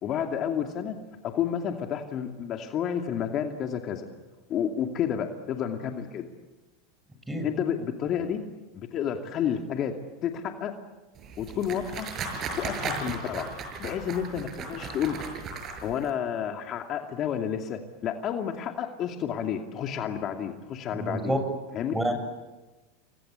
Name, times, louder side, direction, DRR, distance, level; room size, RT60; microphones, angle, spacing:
voice 1, 0.0-1.0 1.2-4.1 4.5-6.3 7.4-8.4 8.7-9.9 10.2-10.7 11.4-12.1 12.6-13.5 13.8-15.2 15.8-21.3 21.7-22.0, left 8 dB, 40° left, 4 dB, 2.5 m, -30 dB
sound 1, 11.2-16.1, right 4 dB, 40° right, 6.4 m, -36 dB
voice 2, 20.9-21.4 21.9-22.2, right 1 dB, 5° right, 7 dB, 7.3 m, -28 dB
29.5 x 23.0 x 8.3 m, 1.2 s
hypercardioid pair, 100°, 0 cm